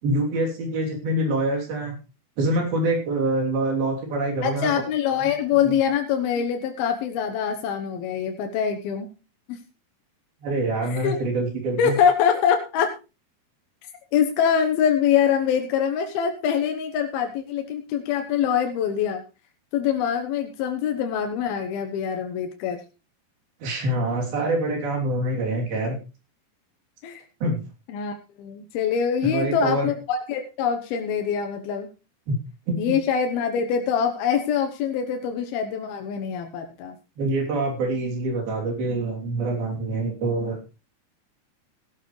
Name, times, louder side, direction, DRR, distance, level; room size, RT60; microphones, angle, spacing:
voice 1, 0.0-2.0 2.4-4.7 5.2-5.3 5.6-5.7 10.4-12.0 23.6-26.0 27.4-27.6 29.2-29.9 32.3-32.4 32.7-33.0 37.2-40.6, right 2 dB, 80° right, 0 dB, 5.1 m, -25 dB
voice 2, 4.4-9.1 9.5-9.6 10.9-11.2 11.8-12.9 14.1-19.2 19.7-22.8 27.0-27.2 27.9-31.9 32.8-37.0, left 8 dB, 85° left, 5 dB, 3.0 m, -24 dB
16.5 x 12.0 x 3.2 m, 0.31 s
omnidirectional pair, 4.2 m